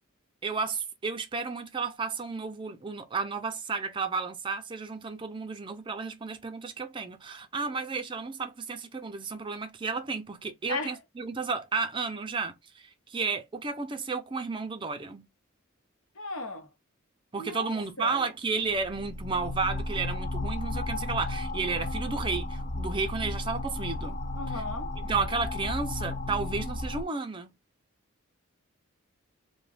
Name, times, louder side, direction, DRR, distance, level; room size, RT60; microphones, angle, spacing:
voice 1, 0.4-15.3 17.3-24.2 24.5-24.6 25.0-27.5, right 4 dB, 25° right, 0.4 m, -32 dB
voice 2, 16.2-16.7 17.4-18.2 24.3-24.9, left 2 dB, 75° left, 0.9 m, -36 dB
sound 1, 18.7-27.0, left 2 dB, 35° left, 0.4 m, -34 dB
2.4 x 2.2 x 3.2 m
head